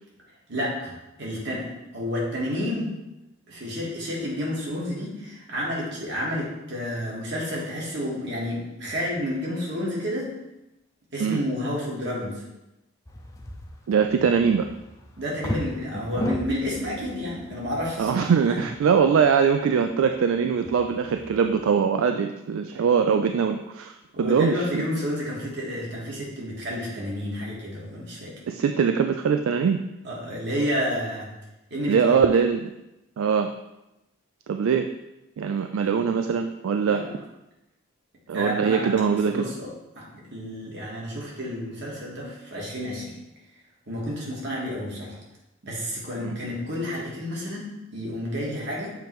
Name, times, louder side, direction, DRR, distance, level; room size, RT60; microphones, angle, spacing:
voice 1, 0.5-2.9 3.5-10.3 11.1-12.4 15.2-18.7 24.1-28.4 30.0-31.3 31.7-32.1 36.9-37.1 38.3-38.9 39.3-39.7 40.0-43.1 43.9-45.2 45.6-48.9, equal, 55° right, -5 dB, 1.8 m, -30 dB
sound 1, 13.1-21.7, left 1 dB, 15° left, 0.6 m, -37 dB
voice 2, 13.9-14.7 18.0-24.9 28.5-29.8 31.9-32.7 33.2-33.5 34.5-34.9 35.4-37.0 38.3-39.5 46.2-46.4, right 6 dB, 75° right, 7 dB, 0.3 m, -22 dB
6.9 x 3.1 x 4.6 m, 0.95 s
head